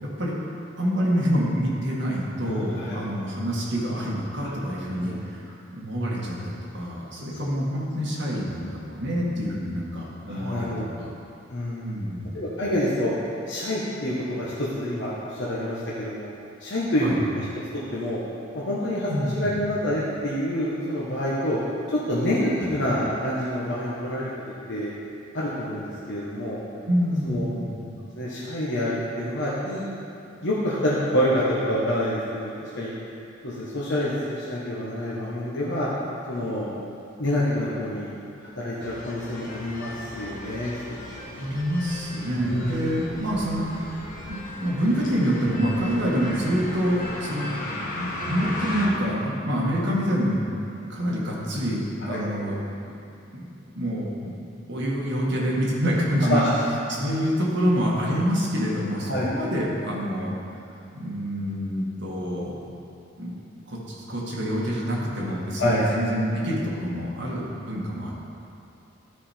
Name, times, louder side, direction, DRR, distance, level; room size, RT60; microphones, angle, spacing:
voice 1, 0.8-11.1 11.8-12.3 17.0-17.2 19.1-19.5 26.9-27.7 41.4-47.5 48.3-50.4 50.9-52.6 53.3-53.5 53.8-54.3 54.7-56.5 57.0-60.3 60.9-62.6 63.2-68.1, equal, 65° right, -5 dB, 1.8 m, -26 dB
voice 2, 2.4-3.0 4.9-5.2 10.3-10.9 11.5-11.9 12.3-13.1 13.5-16.3 16.6-17.1 17.3-17.4 17.9-18.2 18.5-21.6 21.9-24.3 24.7-24.9 25.3-26.6 27.2-27.5 28.1-29.9 30.4-32.9 33.4-35.9 36.3-36.7 37.2-38.1 38.6-41.0 41.3-41.5 42.4-42.8 52.0-52.3 56.3-56.5 59.1-59.3 65.6-65.8, left 1 dB, 65° left, -7 dB, 1.2 m, -27 dB
sound 1, 38.8-48.9, left 1 dB, 45° left, 1.3 m, -36 dB
12.5 x 4.8 x 4.4 m, 2.7 s
head